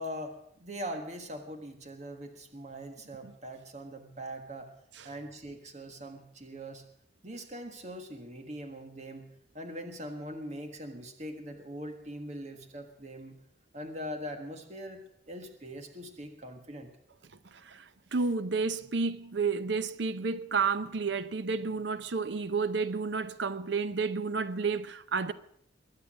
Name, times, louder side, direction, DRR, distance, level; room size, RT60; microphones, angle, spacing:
voice 1, 0.0-4.7 5.0-6.8 7.2-9.3 9.5-13.3 13.7-16.9, equal, 35° right, 1.6 m, -42 dB
voice 2, 17.5-25.3, right 4 dB, 65° right, 0.7 m, -31 dB
22.0 x 8.4 x 6.3 m
head